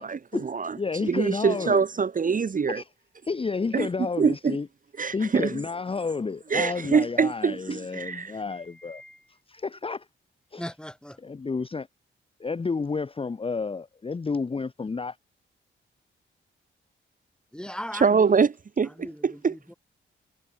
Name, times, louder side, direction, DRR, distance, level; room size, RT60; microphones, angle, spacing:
voice 1, 0.0-0.8 1.0-2.8 3.7-3.9 4.2-4.6 5.0-5.5 6.5-8.3 18.0-19.5, right 5 dB, 40° right, 0.9 m, -24 dB
voice 2, 0.8-1.8 2.7-2.9 3.2-4.7 5.1-9.0 9.5-10.1 10.5-10.6 11.2-11.9 12.4-15.2, left 4 dB, 25° left, 0.7 m, -30 dB
voice 3, 8.5-9.2 10.6-11.2 17.5-18.4 18.8-19.7, equal, 5° left, 2.9 m, -39 dB
cardioid pair, 80°, 21 cm